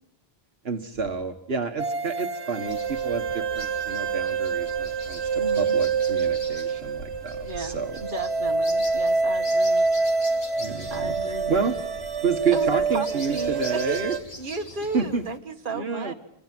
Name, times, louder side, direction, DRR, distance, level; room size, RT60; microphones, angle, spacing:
voice 1, 0.6-8.0 10.6-11.1 11.5-11.8 12.2-14.1 14.9-15.2 15.7-16.1, right 5 dB, 70° right, 6 dB, 1.7 m, -29 dB
sound 1, 1.8-14.2, right 4 dB, 90° right, 1.8 m, -26 dB
sound 2, 2.7-15.4, left 2 dB, 80° left, 3.4 m, -43 dB
voice 2, 5.3-5.7 7.4-9.9 10.9-11.6 12.5-16.1, right 3 dB, 55° right, 4 dB, 1.8 m, -34 dB
26.5 x 26.0 x 7.7 m, 0.74 s
omnidirectional pair, 1.1 m